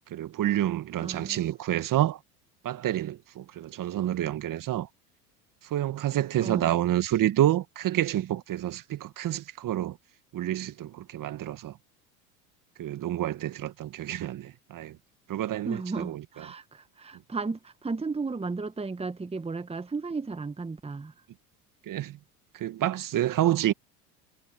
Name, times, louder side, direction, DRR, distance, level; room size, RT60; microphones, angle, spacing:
voice 1, 0.1-2.2 2.6-4.9 5.7-10.0 10.3-11.8 12.8-15.0 15.3-16.2 21.9-22.2 22.5-23.7, right 12 dB, 45° right, 2.0 m, -28 dB
voice 2, 1.0-1.5 6.4-6.7 15.6-21.1, right 4 dB, 10° right, 1.5 m, -34 dB
hypercardioid pair, 80°, 47 cm